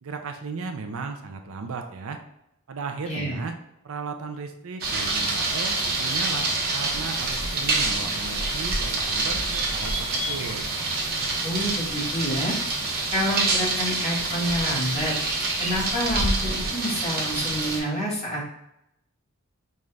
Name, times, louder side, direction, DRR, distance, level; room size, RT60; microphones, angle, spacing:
voice 1, 0.0-2.2 2.7-3.5 3.8-10.6, right 4 dB, 65° right, 6 dB, 0.5 m, -35 dB
voice 2, 3.0-3.4 11.4-12.6 13.1-15.1 15.6-18.6, equal, 30° left, -5 dB, 1.4 m, -28 dB
sound 1, 4.8-17.8, right 2 dB, 45° right, 0.9 m, -27 dB
sound 2, 9.5-13.6 13.9-16.4, right 1 dB, 10° right, 0.9 m, -38 dB
5.3 x 2.4 x 3.2 m, 0.81 s
head